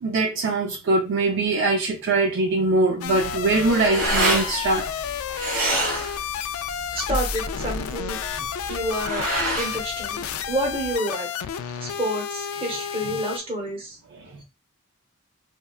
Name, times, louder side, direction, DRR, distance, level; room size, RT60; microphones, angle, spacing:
voice 1, 0.0-4.9, right 2 dB, 55° right, 0.4 m, -22 dB
homemade waveshaper test, 3.0-13.4, left 8 dB, 80° left, 0.3 m, -31 dB
sound 1, 3.0-10.9, right 1 dB, 85° right, 1.1 m, -28 dB
voice 2, 6.9-9.3 9.6-11.3 11.7-14.0, right 1 dB, 25° right, 0.9 m, -29 dB
3.4 x 2.1 x 2.3 m
head